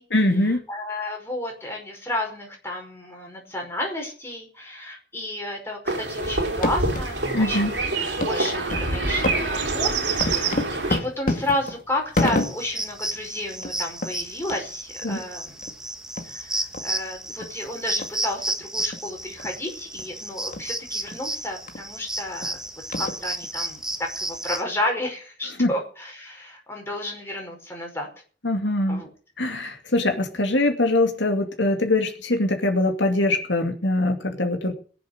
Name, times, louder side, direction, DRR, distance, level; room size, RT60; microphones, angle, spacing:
voice 1, 0.1-0.6 7.3-7.7 15.0-15.2 25.6-25.7 28.4-29.0 29.4-34.7, left 2 dB, 80° left, 5 dB, 2.5 m, -22 dB
voice 2, 0.7-7.7 8.0-10.5 10.9-15.6 16.2-22.6 23.0-28.1 28.9-29.1, left 1 dB, 15° left, 1 dB, 5.2 m, -32 dB
sound 1, 5.9-11.0, right 3 dB, 70° right, 3.6 m, -26 dB
sound 2, 6.4-7.1 7.5-7.6 8.2-8.4 8.7-8.9 9.2-12.8 13.2-13.3 13.5-13.8 14.0-14.1 14.5-14.6 15.1-15.2 15.6-15.7 16.2-16.3 16.7-16.8 17.4-17.5 18.0-18.1 18.8-19.0 19.4-19.6 20.0-20.1 20.5-20.7 21.1-21.2 21.7-21.8 22.4-22.5 22.9-23.5, left 2 dB, 50° left, 2.1 m, -28 dB
sound 3, 12.1-24.6, right 1 dB, 5° right, 1.4 m, -32 dB
22.0 x 7.8 x 6.6 m, 0.41 s
head